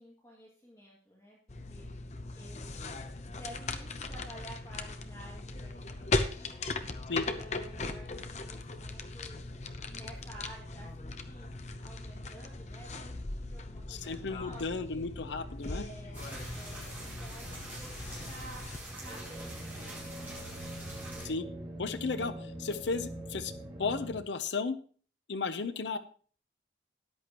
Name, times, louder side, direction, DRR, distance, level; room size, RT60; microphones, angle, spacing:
voice 1, 0.0-1.4 1.7-3.0 3.3-6.6 7.1-9.4 9.9-11.5 11.8-14.8 15.6-20.7 25.7-26.0, right 1 dB, 20° left, -4 dB, 2.2 m, -52 dB
sound 1, 1.5-18.8, left 2 dB, 40° left, 0.8 m, -39 dB
voice 2, 13.9-15.9 21.2-21.5 21.8-23.5 23.8-24.8 25.3-26.0, left 4 dB, 80° left, 12 dB, 0.7 m, -34 dB
sound 2, 16.1-21.3, right 1 dB, 10° right, 4.2 m, -44 dB
sound 3, 19.0-24.2, right 1 dB, 25° right, 1.8 m, -43 dB
13.5 x 10.5 x 3.0 m, 0.43 s
head